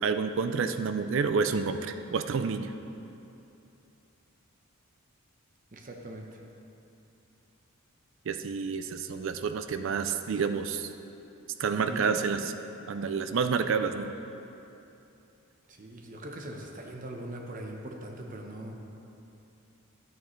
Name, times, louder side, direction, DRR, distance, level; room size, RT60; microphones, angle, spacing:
voice 1, 0.0-2.7 8.3-10.9 11.6-12.5 12.9-14.1, right 5 dB, 65° right, 9 dB, 0.4 m, -29 dB
voice 2, 5.7-6.3 11.8-12.2 15.7-18.7, right 1 dB, 40° right, 1 dB, 0.9 m, -41 dB
12.0 x 9.1 x 3.2 m, 2.8 s
head